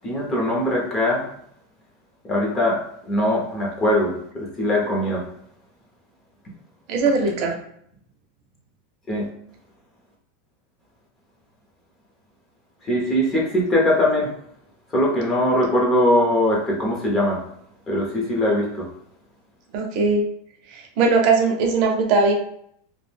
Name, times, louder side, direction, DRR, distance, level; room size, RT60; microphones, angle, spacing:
voice 1, 0.0-1.3 2.3-2.8 3.1-5.2 9.1-9.3 12.9-14.3 14.9-17.4 17.9-18.8, left 1 dB, 20° left, -3 dB, 0.6 m, -21 dB
voice 2, 6.9-7.5 19.7-20.2 20.7-22.3, right 4 dB, 40° right, 2 dB, 0.5 m, -19 dB
2.3 x 2.0 x 3.2 m, 0.68 s
supercardioid pair, 165°, 0 cm